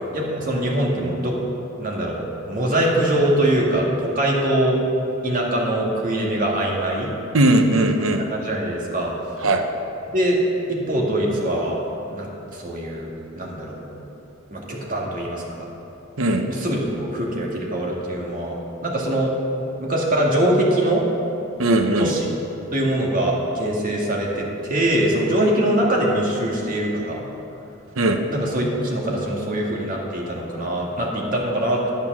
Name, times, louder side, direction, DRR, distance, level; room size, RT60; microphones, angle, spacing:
voice 1, 0.1-1.4 1.8-4.8 5.2-7.1 8.3-9.1 10.1-10.4 10.7-11.8 12.1-13.8 14.5-15.7 16.5-19.3 19.8-21.0 21.9-22.3 22.7-27.2 28.3-31.9, right 1 dB, 40° right, -2 dB, 2.0 m, -23 dB
voice 2, 7.3-8.2 9.4-9.6 16.2-16.4 21.6-22.1 28.0-28.2, right 1 dB, 80° right, 5 dB, 0.9 m, -18 dB
10.5 x 9.3 x 6.1 m, 2.9 s
head